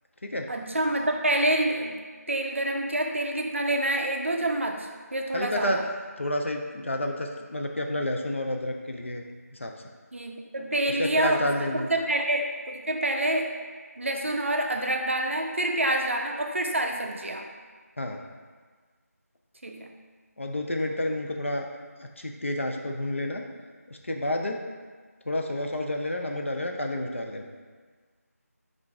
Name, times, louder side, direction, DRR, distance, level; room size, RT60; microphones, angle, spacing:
voice 1, 0.5-2.0 2.3-5.8 10.1-11.5 11.9-13.5 14.0-17.5 19.6-19.9, right 1 dB, 50° right, 2 dB, 0.5 m, -27 dB
voice 2, 5.3-5.8 6.2-9.2 9.6-9.7 11.0-11.9 18.0-18.2 20.4-21.7 22.0-23.4 23.9-24.6 25.3-27.5, left 1 dB, 50° left, 3 dB, 0.4 m, -30 dB
5.1 x 2.6 x 3.5 m, 1.5 s
figure-of-eight pair, 175°, 9 cm